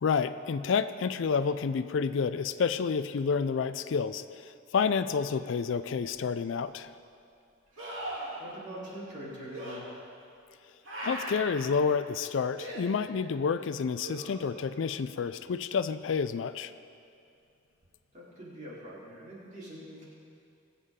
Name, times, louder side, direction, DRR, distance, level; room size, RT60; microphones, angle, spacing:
voice 1, 0.0-6.9 11.0-16.7, left 5 dB, 65° left, 12 dB, 0.4 m, -29 dB
sound 1, 6.2-6.3 7.8-8.4 9.5-9.8 10.8-11.6 12.6-12.8 14.0-14.7 17.8-17.9, right 1 dB, 70° right, 2.7 m, -39 dB
voice 2, 8.4-9.9 18.1-20.0, equal, 40° right, -7 dB, 3.5 m, -43 dB
21.0 x 8.3 x 3.7 m, 2.4 s
head